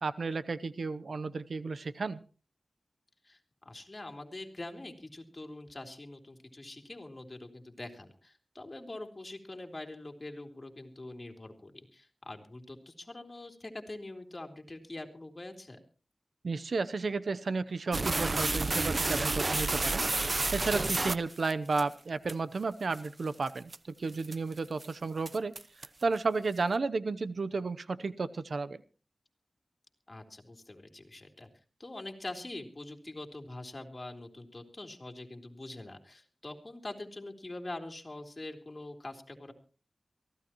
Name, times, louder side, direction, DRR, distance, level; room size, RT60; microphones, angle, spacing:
voice 1, 0.0-2.2 16.4-20.0 20.5-23.7 24.0-25.5 26.0-28.8, right 4 dB, 75° right, 14 dB, 0.7 m, -32 dB
voice 2, 3.2-15.8 30.1-31.5 31.8-39.5, left 2 dB, 40° left, 3 dB, 3.3 m, -44 dB
sound 1, 17.9-21.8 22.3-22.4 22.9-23.1 23.5-23.8 24.2-24.5 24.8-24.9 25.3-26.0, right 2 dB, 50° right, 0.9 m, -30 dB
23.5 x 15.5 x 3.0 m, 0.36 s
cardioid pair, 45°, 0 cm